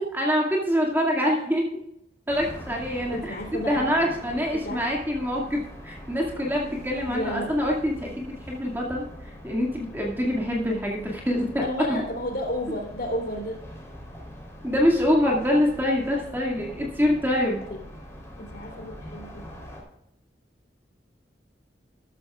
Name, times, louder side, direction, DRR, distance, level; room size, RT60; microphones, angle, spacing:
voice 1, 0.1-1.6 2.3-3.3 3.7-12.0 14.6-17.6, equal, 10° right, -2 dB, 2.2 m, -25 dB
sound 1, 2.3-19.8, left 1 dB, 15° left, 3.6 m, -43 dB
voice 2, 3.1-3.8 4.6-4.8 7.1-7.5 11.6-13.6 17.7-17.8 18.4-19.5, left 1 dB, 60° left, 2 dB, 3.5 m, -32 dB
13.5 x 13.0 x 2.4 m, 0.78 s
head